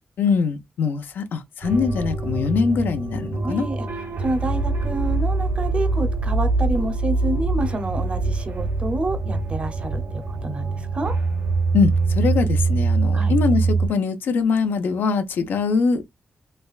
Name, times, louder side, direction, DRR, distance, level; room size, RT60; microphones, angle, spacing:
voice 1, 0.2-3.7 11.7-16.0, left 5 dB, 85° left, 0.6 m, -22 dB
sound 1, 1.6-13.9, right 3 dB, 85° right, 1.2 m, -23 dB
voice 2, 3.4-3.8 4.2-11.1 13.1-13.4, right 2 dB, 35° right, 0.7 m, -28 dB
3.3 x 3.2 x 2.4 m
wide cardioid pair, 110°, 3 cm